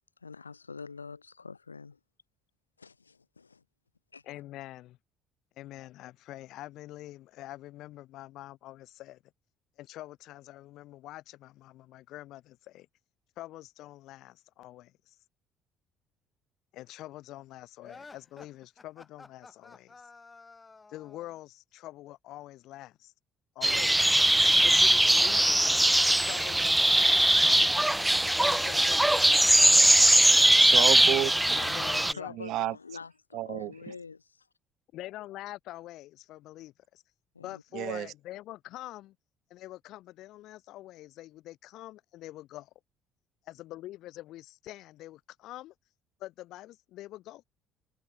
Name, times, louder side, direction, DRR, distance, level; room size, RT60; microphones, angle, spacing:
voice 1, 0.2-2.0 2.8-3.6 4.1-4.2 32.1-34.4 37.4-37.6, left 5 dB, 90° left, 2.0 m, -45 dB
voice 2, 4.3-5.0 5.6-9.2 9.8-12.9 13.4-15.2 16.7-20.0 20.9-23.1 23.6-24.2 24.6-25.9 26.2-30.0 31.5-32.4 34.9-37.0 37.4-39.2 39.5-42.7 43.5-45.7 46.2-47.4, left 15 dB, 60° left, 7.3 m, -45 dB
sound 1, 17.8-21.4, left 3 dB, 25° left, 3.8 m, -52 dB
sound 2, 23.6-32.1, right 1 dB, 5° right, 0.4 m, -21 dB
voice 3, 30.3-31.7 32.4-32.7 33.3-33.7 37.7-38.1, right 15 dB, 60° right, 1.0 m, -31 dB
figure-of-eight pair, 50°, 0 cm